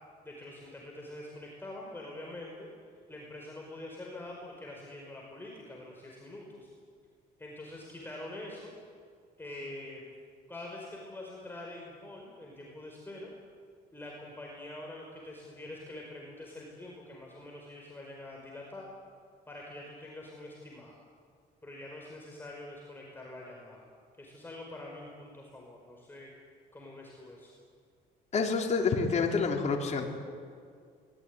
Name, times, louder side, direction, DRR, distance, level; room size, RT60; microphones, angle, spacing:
voice 1, 0.2-6.7 7.4-8.7 9.4-10.1 10.5-13.3 13.9-18.9 19.5-20.9 21.6-23.9 24.2-26.3 26.7-27.5, left 1 dB, 10° left, -2 dB, 5.2 m, -45 dB
voice 2, 28.3-30.2, left 4 dB, 40° left, 1 dB, 4.0 m, -28 dB
24.0 x 20.5 x 9.7 m, 2.2 s
cardioid pair, 110°, 17 cm